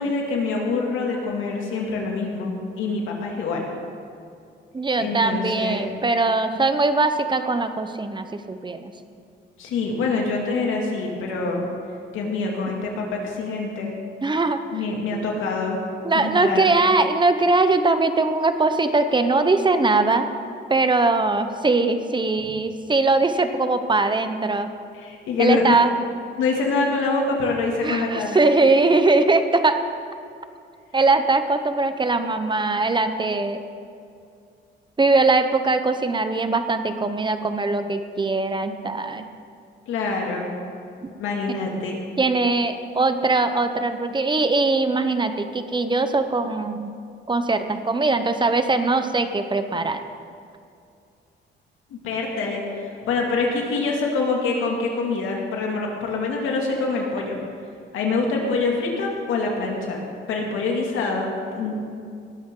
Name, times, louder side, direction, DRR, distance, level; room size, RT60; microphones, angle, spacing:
voice 1, 0.0-3.7 5.0-5.9 9.6-11.6 12.1-13.9 14.7-15.8 16.1-16.7 24.9-25.7 26.4-28.4 39.9-40.5 41.2-42.0 51.9-57.4 57.9-60.0 60.3-61.8, left 3 dB, 90° left, 0 dB, 2.5 m, -25 dB
voice 2, 4.7-8.9 14.2-14.6 15.1-15.2 16.0-20.3 20.7-24.7 25.4-25.9 27.8-29.8 30.9-33.6 35.0-39.3 41.0-41.1 42.2-46.9 47.3-50.0, right 3 dB, 25° right, 9 dB, 0.9 m, -21 dB
19.0 x 13.0 x 3.9 m, 2.4 s
cardioid pair, 90°, 20 cm